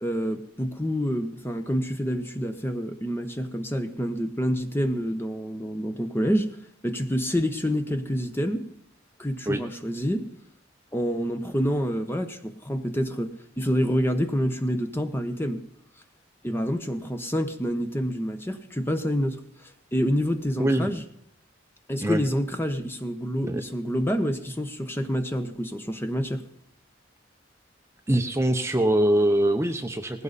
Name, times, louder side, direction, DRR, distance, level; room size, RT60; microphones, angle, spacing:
voice 1, 0.0-6.5 6.8-8.6 9.2-10.3 10.9-15.6 16.4-19.4 19.9-21.0 21.9-26.5, equal, 10° left, 0.9 m, -27 dB
voice 2, 20.6-20.9 22.0-22.2 23.4-23.6 28.1-30.2, right 1 dB, 15° right, 0.7 m, -23 dB
18.5 x 16.0 x 4.1 m
head